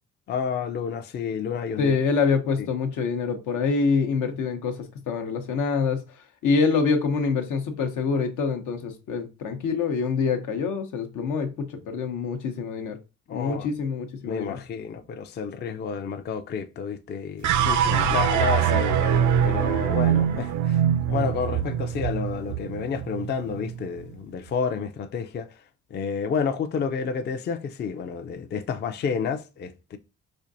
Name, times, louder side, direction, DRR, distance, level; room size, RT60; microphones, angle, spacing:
voice 1, 0.3-1.9 2.6-2.7 13.3-13.7 14.3-17.8 18.1-25.5 25.9-30.0, left 6 dB, 35° left, 0.4 m, -30 dB
voice 2, 1.8-6.0 6.4-13.0 13.3-14.6 17.6-18.1, left 5 dB, 85° left, 0.8 m, -26 dB
sound 1, 17.4-23.8, right 9 dB, 70° right, 0.5 m, -23 dB
4.3 x 2.6 x 2.6 m
cardioid pair, 90°, 30 cm